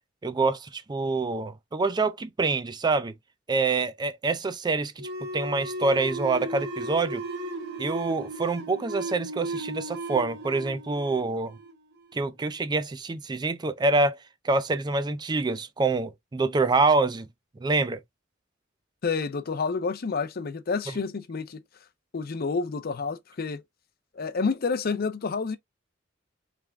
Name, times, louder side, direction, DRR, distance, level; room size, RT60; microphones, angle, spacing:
voice 1, 0.2-3.1 3.5-5.1 5.3-7.2 7.8-11.6 12.1-14.2 14.4-17.3 17.6-18.0, right 3 dB, 20° right, 0.4 m, -26 dB
sound 1, 5.0-12.2, right 1 dB, 60° right, 1.0 m, -35 dB
voice 2, 19.0-21.6 22.1-23.6 24.1-25.6, left 4 dB, 50° left, 0.5 m, -29 dB
3.5 x 3.3 x 3.4 m
head